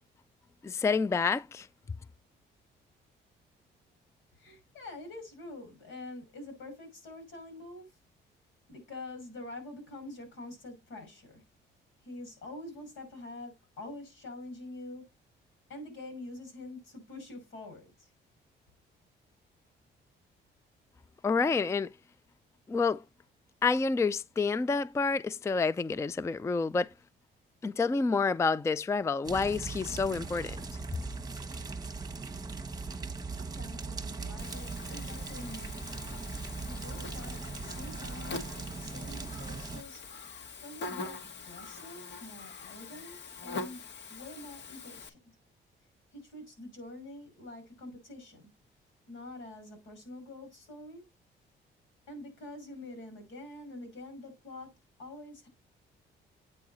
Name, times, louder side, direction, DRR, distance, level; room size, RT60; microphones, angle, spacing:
voice 1, 0.6-1.7 21.2-21.9 22.7-23.0 23.6-26.9 27.6-30.6, left 4 dB, 15° left, 0.3 m, -28 dB
voice 2, 4.4-7.9 8.7-11.4 12.0-15.1 15.7-18.1 33.3-35.8 36.6-40.0 40.6-43.8 44.1-45.2 46.1-48.5 49.1-51.0 52.1-54.7 55.0-55.5, left 2 dB, 85° left, 5.6 m, -46 dB
sound 1, 29.2-39.8, right 4 dB, 20° right, 1.2 m, -39 dB
Buzz, 34.4-45.1, left 3 dB, 65° left, 1.6 m, -44 dB
8.6 x 4.6 x 3.9 m
cardioid pair, 90°, 20 cm